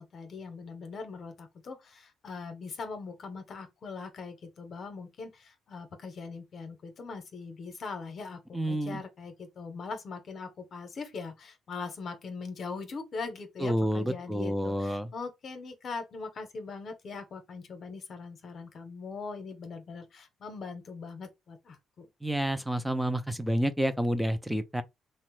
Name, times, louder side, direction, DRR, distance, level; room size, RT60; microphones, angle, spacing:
voice 1, 0.0-22.1, left 4 dB, 55° left, 0.8 m, -41 dB
voice 2, 8.5-9.0 13.6-15.1 22.2-24.8, equal, 5° right, 0.5 m, -29 dB
3.1 x 2.0 x 3.1 m
cardioid pair, 90°, 0 cm